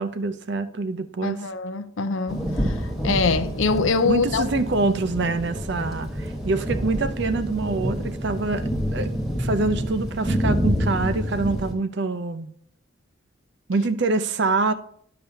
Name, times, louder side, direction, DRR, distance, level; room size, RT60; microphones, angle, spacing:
voice 1, 0.0-1.4 4.1-9.1 9.4-12.5 13.7-14.7, right 3 dB, 55° right, 0.5 m, -25 dB
voice 2, 1.2-4.5, left 4 dB, 70° left, 0.6 m, -24 dB
sound 1, 2.3-11.7, equal, ahead, 1.3 m, -27 dB
10.5 x 6.7 x 2.8 m
head